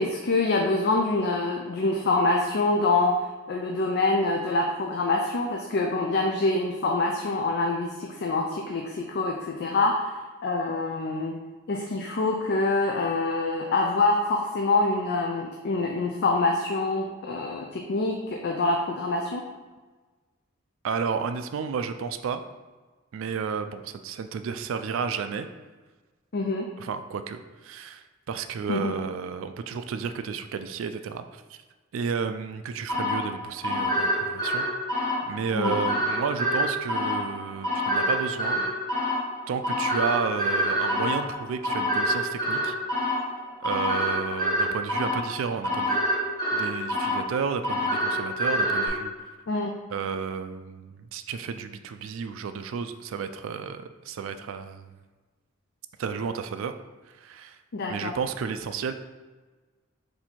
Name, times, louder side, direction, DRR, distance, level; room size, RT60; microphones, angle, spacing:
voice 1, 0.0-3.2 3.5-11.3 11.7-19.5 26.3-26.7 28.7-28.9 35.5-35.8 49.5-49.7 57.7-58.1, left 2 dB, 50° left, 1 dB, 0.4 m, -25 dB
voice 2, 20.8-22.4 23.1-25.5 26.8-31.6 31.9-34.7 35.2-38.7 39.5-42.8 43.6-46.0 46.5-49.1 49.9-54.9 56.0-56.7 57.2-57.6 57.9-58.9, right 6 dB, 65° right, 10 dB, 0.3 m, -32 dB
sound 1, 32.9-48.9, equal, 20° left, 1.2 m, -27 dB
4.2 x 2.7 x 4.4 m, 1.3 s
head